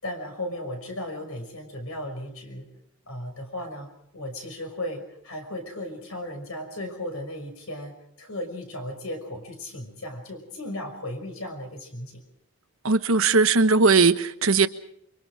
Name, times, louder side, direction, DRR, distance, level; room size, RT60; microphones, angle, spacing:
voice 1, 0.0-2.7 3.0-12.2, left 1 dB, 85° left, 5.8 m, -36 dB
voice 2, 12.8-14.7, right 4 dB, 80° right, 1.1 m, -19 dB
28.5 x 24.0 x 4.9 m
head